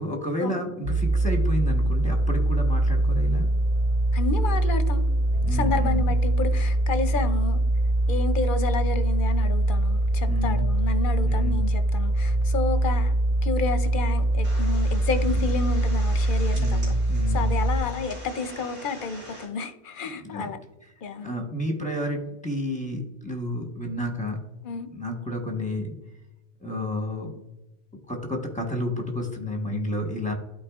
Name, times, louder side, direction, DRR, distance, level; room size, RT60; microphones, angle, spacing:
voice 1, 0.0-3.5 5.4-6.1 10.3-10.7 11.2-11.7 16.5-17.6 20.2-20.5 21.2-24.4 24.9-25.9 26.6-27.4 28.1-30.3, left 1 dB, 5° left, 2 dB, 1.1 m, -31 dB
sound 1, 0.8-17.8, right 1 dB, 70° right, 1.2 m, -23 dB
voice 2, 4.1-5.0 5.5-7.6 8.1-13.1 13.4-16.9 17.3-20.6 21.0-21.3 24.6-24.9, left 4 dB, 55° left, 10 dB, 0.7 m, -30 dB
sound 2, 14.4-19.5, equal, 85° right, 2.8 m, -43 dB
12.0 x 4.4 x 2.4 m, 0.99 s
omnidirectional pair, 1.1 m